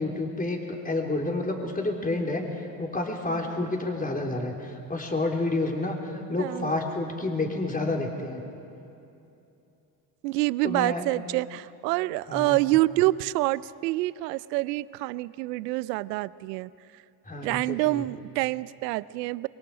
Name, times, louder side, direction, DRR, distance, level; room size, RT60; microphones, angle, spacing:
voice 1, 0.0-8.4 10.6-11.0 12.3-12.6 17.3-18.0, left 2 dB, 15° left, 1 dB, 4.0 m, -29 dB
voice 2, 6.4-6.7 10.2-16.7 17.4-19.5, right 19 dB, 80° right, 20 dB, 0.6 m, -27 dB
27.0 x 22.5 x 5.1 m, 2.7 s
hypercardioid pair, 60°, 48 cm